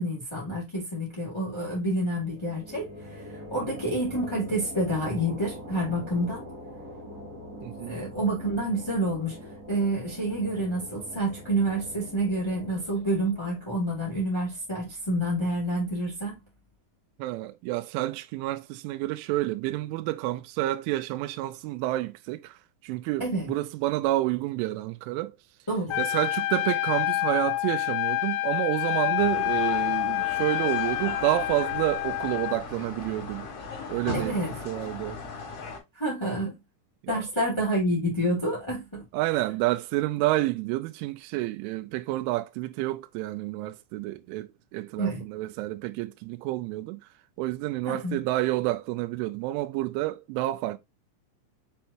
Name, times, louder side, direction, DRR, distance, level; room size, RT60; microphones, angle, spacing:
voice 1, 0.0-3.2 3.5-6.4 7.8-9.3 9.7-16.4 23.2-23.5 25.7-26.0 34.1-34.5 35.9-36.6 37.1-39.0 45.0-45.2 47.8-48.2, right 1 dB, 15° left, 1.0 m, -28 dB
sound 1, 2.1-15.4, equal, 30° right, 1.9 m, -44 dB
voice 2, 7.6-8.0 17.2-25.4 26.0-33.5 33.9-34.4 34.7-35.2 37.0-37.2 39.1-47.1 47.4-50.8, right 17 dB, 85° right, 3.0 m, -29 dB
Trumpet, 25.9-32.6, left 18 dB, 85° left, 3.2 m, -28 dB
sound 2, 29.2-35.8, left 4 dB, 45° left, 3.6 m, -38 dB
7.3 x 4.4 x 2.9 m
omnidirectional pair, 5.6 m